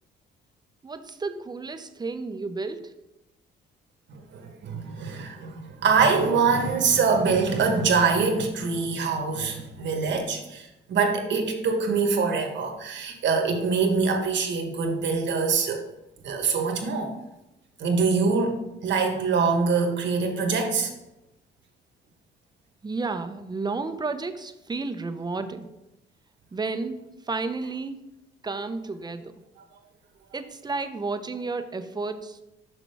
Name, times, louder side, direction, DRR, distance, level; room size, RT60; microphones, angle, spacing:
voice 1, 0.8-2.9 22.8-25.7 26.5-27.0 27.3-28.0 28.4-29.3 30.3-32.4, right 3 dB, 20° right, 9 dB, 0.6 m, -32 dB
voice 2, 4.1-15.9 16.2-17.2 17.8-20.9, right 5 dB, 65° right, 4 dB, 1.2 m, -24 dB
6.1 x 5.9 x 3.4 m, 0.94 s
cardioid pair, 90°, 20 cm